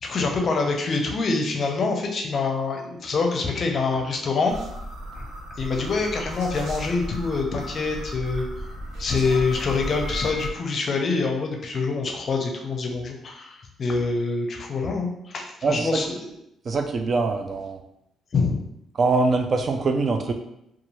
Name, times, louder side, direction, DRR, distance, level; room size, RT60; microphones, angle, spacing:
voice 1, 0.0-4.6 5.1-5.3 5.6-8.4 9.0-16.3 18.3-18.7, left 4 dB, 50° left, 2 dB, 0.5 m, -25 dB
sound 1, 4.5-10.5, equal, 85° right, 0.6 m, -35 dB
voice 2, 15.6-16.0 16.7-17.8 19.0-20.3, right 3 dB, 45° right, 5 dB, 0.3 m, -23 dB
2.6 x 2.4 x 3.0 m, 0.80 s
cardioid pair, 90°, 0 cm